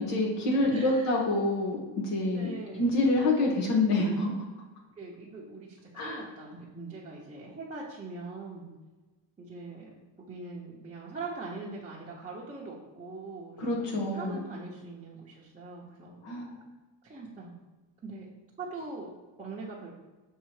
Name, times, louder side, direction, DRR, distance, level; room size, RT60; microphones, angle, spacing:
voice 1, 0.0-2.5 2.8-4.3 6.0-6.2 13.6-14.4 16.2-16.5, left 2 dB, 90° left, -1 dB, 1.9 m, -27 dB
voice 2, 0.7-1.3 2.3-2.9 5.0-8.7 9.4-16.1 17.0-17.5 18.0-18.3 18.6-19.9, right 3 dB, 15° right, -7 dB, 0.7 m, -42 dB
6.5 x 3.6 x 4.7 m, 1.2 s
cardioid pair, 175°, 49 cm